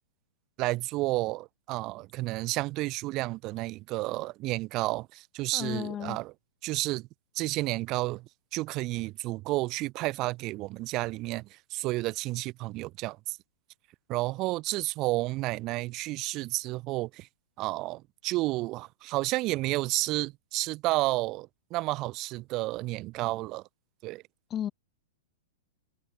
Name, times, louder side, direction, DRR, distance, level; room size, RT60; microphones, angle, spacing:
voice 1, 0.6-6.3 6.6-7.1 7.3-13.4 14.1-17.3 17.6-23.6 24.0-24.2, right 20 dB, 40° right, 0.8 m, -31 dB
voice 2, 5.5-6.2 24.5-24.7, left 10 dB, 25° left, 0.5 m, -33 dB
hypercardioid pair, 115°, 0 cm